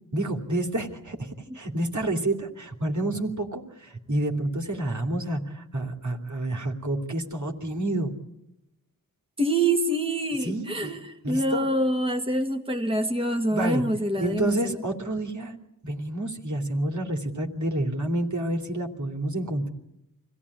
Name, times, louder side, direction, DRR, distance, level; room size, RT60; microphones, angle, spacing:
voice 1, 0.1-1.3 1.5-8.1 10.4-11.0 11.2-11.7 13.5-13.8 14.2-15.6 15.8-19.7, right 1 dB, 55° right, 3.1 m, -29 dB
voice 2, 9.4-14.8, right 1 dB, 15° right, 2.0 m, -26 dB
25.5 x 16.5 x 9.9 m
wide cardioid pair, 55°, 35 cm